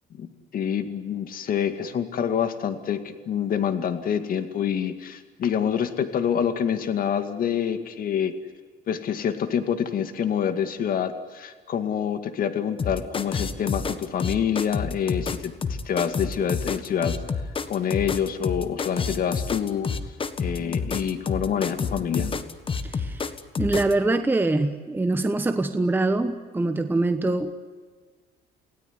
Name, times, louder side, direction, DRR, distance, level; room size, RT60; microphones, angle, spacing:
voice 1, 0.1-8.3 8.9-17.2 17.7-19.9 20.4-22.4, left 8 dB, 55° left, 9 dB, 2.2 m, -27 dB
sound 1, 12.8-23.9, left 5 dB, 30° left, 1.5 m, -29 dB
voice 2, 22.8-23.2 23.6-27.5, right 2 dB, 10° right, 7 dB, 1.2 m, -24 dB
29.0 x 17.5 x 9.7 m, 1.5 s
cardioid pair, 120°, 18 cm